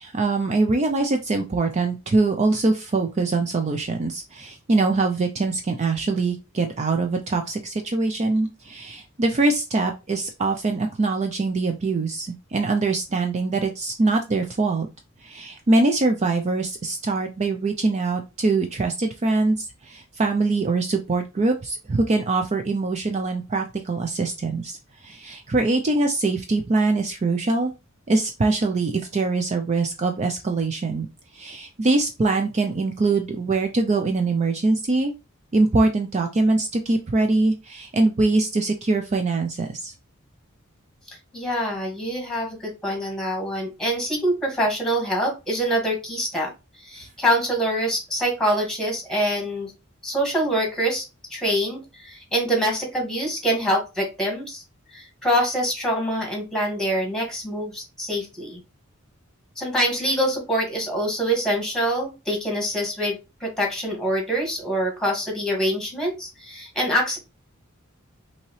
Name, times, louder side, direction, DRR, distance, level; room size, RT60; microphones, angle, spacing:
voice 1, 0.0-14.9 15.2-27.7 28.1-31.1 31.3-35.1 35.5-39.9, right 3 dB, 35° right, 4 dB, 0.4 m, -23 dB
voice 2, 41.1-46.5 46.8-49.7 50.0-51.0 51.3-54.6 54.9-58.6 59.6-67.2, equal, 5° left, 1 dB, 1.9 m, -25 dB
5.5 x 2.8 x 3.1 m, 0.27 s
head